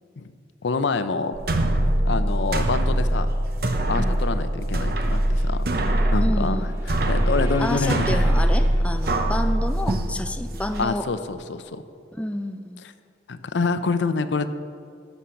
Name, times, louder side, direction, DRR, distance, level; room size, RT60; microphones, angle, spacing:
voice 1, 0.6-1.3 2.0-3.3 3.9-8.3 10.8-11.8 12.8-12.9 13.3-14.5, left 4 dB, 80° left, 11 dB, 0.6 m, -27 dB
sound 1, 1.3-10.8, right 1 dB, 55° right, 0.8 m, -23 dB
voice 2, 6.2-6.7 7.6-11.1 12.1-12.8, left 1 dB, 5° left, 7 dB, 0.3 m, -29 dB
sound 2, 6.5-9.6, left 1 dB, 15° right, 2.3 m, -41 dB
11.5 x 7.2 x 5.8 m, 2.3 s
head